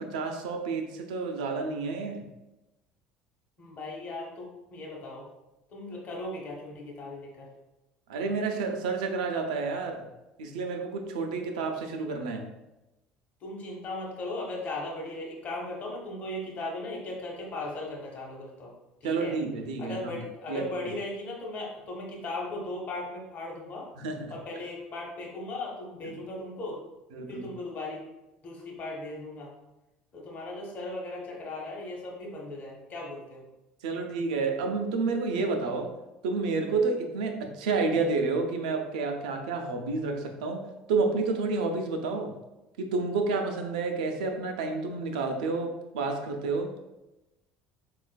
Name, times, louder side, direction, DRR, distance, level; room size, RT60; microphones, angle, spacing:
voice 1, 0.0-2.2 8.1-10.0 10.4-12.5 19.0-20.7 24.0-24.3 27.1-27.5 33.8-35.9 36.2-40.6 40.9-42.3 42.8-46.7, right 4 dB, 90° right, 4 dB, 0.4 m, -30 dB
voice 2, 3.6-5.2 5.7-7.5 13.4-18.7 19.0-19.3 19.8-23.9 24.3-26.8 27.3-28.0 28.4-29.5 30.1-33.4, left 2 dB, 45° left, -2 dB, 0.9 m, -37 dB
4.2 x 2.4 x 2.2 m, 0.98 s
supercardioid pair, 90°, 4 cm